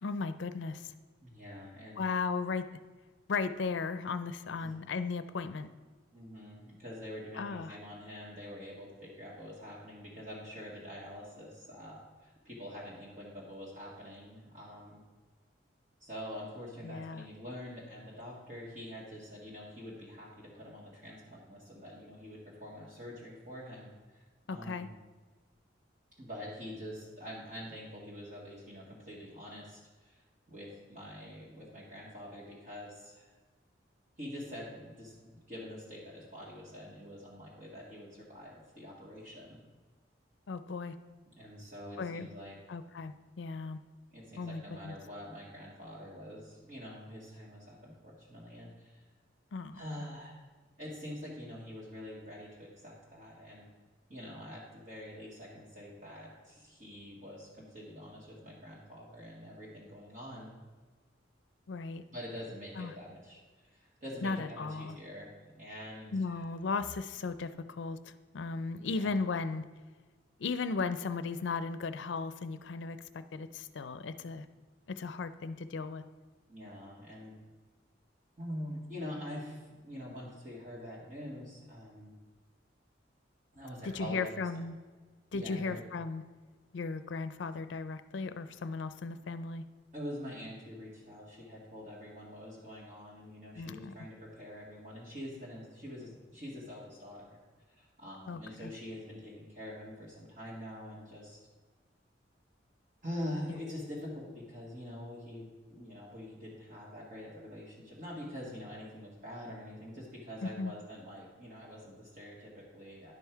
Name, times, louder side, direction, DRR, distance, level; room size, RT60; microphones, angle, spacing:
voice 1, 0.0-0.9 2.0-2.8 3.3-5.7 7.4-7.8 16.8-17.2 24.5-24.9 40.5-41.0 42.0-42.3 42.7-43.8 44.4-44.9 49.5-49.8 61.7-62.0 62.8-62.9 64.2-65.0 66.1-69.6 70.4-74.5 74.9-76.0 83.8-84.7 85.3-86.2 86.7-89.6 93.5-93.9 98.3-98.7 110.4-110.7, left 4 dB, 70° left, 12 dB, 0.5 m, -36 dB
voice 2, 1.2-2.0 4.5-4.7 6.1-15.0 16.0-24.2 24.5-24.9 26.2-30.2 30.5-33.3 34.2-39.6 41.3-42.6 44.1-49.0 49.7-50.3 50.8-53.7 54.1-60.5 62.1-66.5 68.8-69.2 76.5-77.4 78.4-82.1 83.5-84.3 85.3-85.8 89.9-97.4 97.7-101.4 103.0-113.1, equal, 45° right, -5 dB, 1.9 m, -45 dB
10.5 x 5.6 x 4.6 m, 1.4 s
head